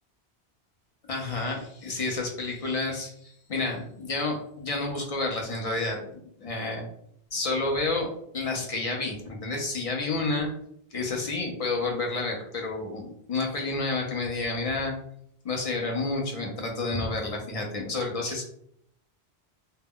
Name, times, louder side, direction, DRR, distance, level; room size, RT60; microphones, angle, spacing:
voice 1, 1.1-6.8 7.3-8.1 8.3-10.5 10.9-14.9 15.4-18.4, left 3 dB, 45° left, 1 dB, 0.5 m, -30 dB
2.1 x 2.1 x 3.5 m, 0.69 s
omnidirectional pair, 1.1 m